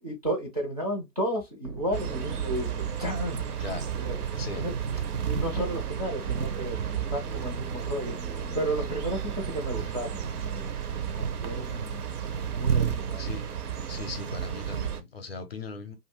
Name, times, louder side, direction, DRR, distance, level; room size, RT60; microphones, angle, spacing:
voice 1, 0.0-3.4 4.0-4.2 4.6-4.7 5.2-6.8 7.1-8.2 8.5-10.8 11.2-12.0 12.5-13.3, right 1 dB, 25° right, 0.4 m, -33 dB
sound 1, 1.6-9.0, right 6 dB, 85° right, 1.0 m, -40 dB
sound 2, 1.9-15.0, right 7 dB, 65° right, 0.7 m, -32 dB
voice 2, 4.4-4.7 13.2-13.5 13.9-16.0, left 4 dB, 40° left, 0.6 m, -39 dB
2.7 x 2.5 x 2.8 m
hypercardioid pair, 150°, 49 cm